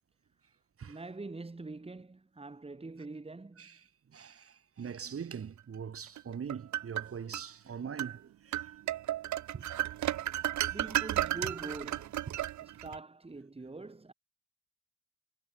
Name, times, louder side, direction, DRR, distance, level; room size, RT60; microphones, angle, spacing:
voice 1, 0.9-3.7 10.7-12.3 12.6-14.1, right 3 dB, 20° right, 4.7 m, -44 dB
voice 2, 4.1-8.7 9.5-9.7, right 7 dB, 50° right, 6.3 m, -42 dB
sound 1, 6.2-7.5 8.0-8.2 8.5-13.0, right 13 dB, 70° right, 1.2 m, -33 dB
cardioid pair, 90°, 30 cm